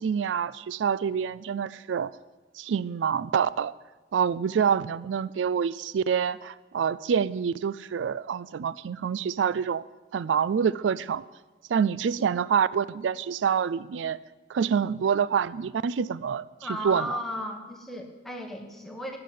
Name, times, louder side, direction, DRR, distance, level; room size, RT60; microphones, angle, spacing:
voice 1, 0.0-2.1 2.6-3.7 4.1-9.8 10.1-11.2 11.7-14.2 14.5-16.4 16.8-17.2, right 7 dB, 90° right, 19 dB, 0.3 m, -26 dB
voice 2, 16.6-19.2, equal, ahead, 2 dB, 1.4 m, -35 dB
12.0 x 6.8 x 9.3 m, 1.2 s
head